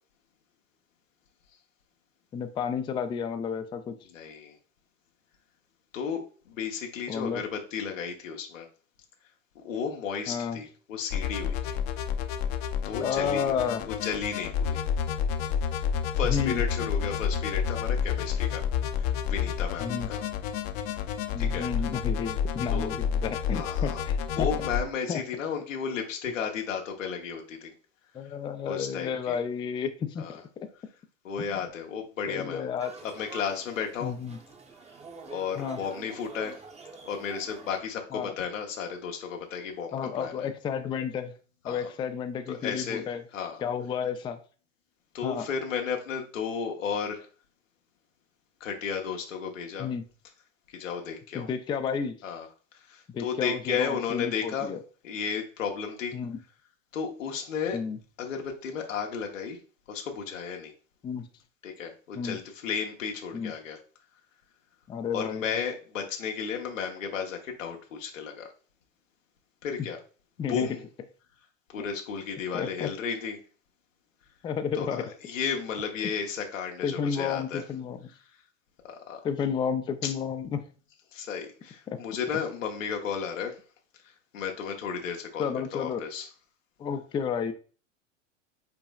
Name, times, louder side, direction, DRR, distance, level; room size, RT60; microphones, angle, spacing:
voice 1, 2.3-3.9 7.1-7.4 10.3-10.6 13.0-13.8 16.2-16.6 19.8-20.1 21.3-24.5 25.1-25.2 28.1-30.7 32.3-32.9 34.0-34.4 35.6-35.8 38.1-38.3 39.9-41.3 41.6-43.2 43.6-44.4 45.2-45.5 49.8-50.0 51.3-52.1 53.1-54.8 56.1-56.4 57.7-58.0 61.0-61.3 62.1-62.4 63.3-63.5 64.9-65.6 70.4-70.7 72.5-72.9 74.4-75.1 76.0-76.1 76.8-78.0 79.2-80.6 81.9-82.0 85.4-86.0 86.8-87.5, left 7 dB, 15° left, 8 dB, 0.3 m, -31 dB
voice 2, 4.1-4.6 5.9-8.7 9.5-11.8 12.8-13.5 13.8-14.8 16.2-18.6 18.9-20.2 21.4-21.7 22.7-22.9 23.5-24.0 24.3-27.7 28.6-29.4 30.2-30.4 31.2-32.6 33.0-34.1 35.3-36.6 37.1-40.5 41.6-41.9 42.5-43.6 45.1-47.3 48.6-49.9 50.7-51.5 52.2-52.5 52.8-54.7 55.0-56.2 56.9-57.8 58.2-59.6 59.9-60.7 61.6-63.8 65.1-68.5 69.6-70.0 70.5-70.8 71.7-73.4 74.7-77.6 78.8-79.2 80.0-80.1 81.1-83.6 84.0-86.3, left 6 dB, 90° left, 2 dB, 1.0 m, -33 dB
sound 1, 11.1-24.8, left 7 dB, 55° left, 0.7 m, -29 dB
sound 2, 32.8-37.8, right 4 dB, 15° right, 0.8 m, -46 dB
5.7 x 4.0 x 2.3 m, 0.38 s
hypercardioid pair, 105°, 38 cm